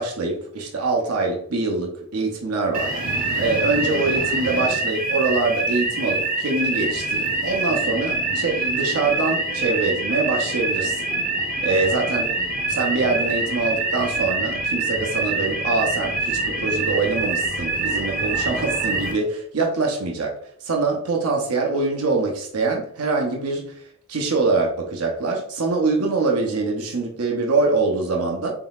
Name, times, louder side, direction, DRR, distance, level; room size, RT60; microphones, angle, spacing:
voice 1, 0.0-11.1 11.6-12.3 12.7-23.8 24.1-28.5, right 3 dB, 85° right, 0.7 m, -24 dB
sound 1, 2.7-19.1, right 2 dB, 40° right, 0.7 m, -25 dB
4.0 x 3.7 x 2.3 m
head